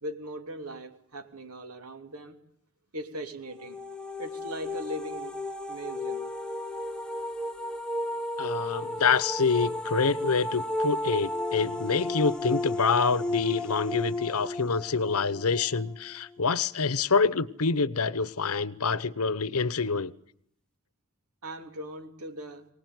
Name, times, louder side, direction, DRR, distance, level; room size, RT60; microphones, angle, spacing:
voice 1, 0.0-2.4 2.9-3.8 4.2-5.4 5.7-6.2 8.0-8.1 8.5-8.7 21.4-22.7, right 1 dB, 90° right, 3.3 m, -39 dB
sound 1, 3.5-16.3, left 1 dB, 5° left, 1.0 m, -33 dB
voice 2, 8.4-20.1, left 4 dB, 80° left, 0.9 m, -26 dB
24.5 x 19.5 x 9.5 m
head